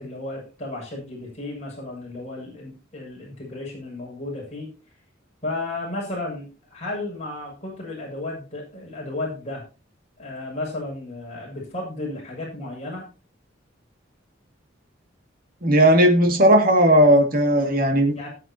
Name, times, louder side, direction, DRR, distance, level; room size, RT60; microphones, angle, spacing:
voice 1, 0.0-4.7 5.4-9.6 10.2-13.1 18.1-18.3, left 2 dB, 35° left, -2 dB, 6.9 m, -33 dB
voice 2, 15.6-18.3, right 1 dB, 50° right, 3 dB, 2.3 m, -16 dB
18.5 x 8.1 x 2.9 m, 0.33 s
head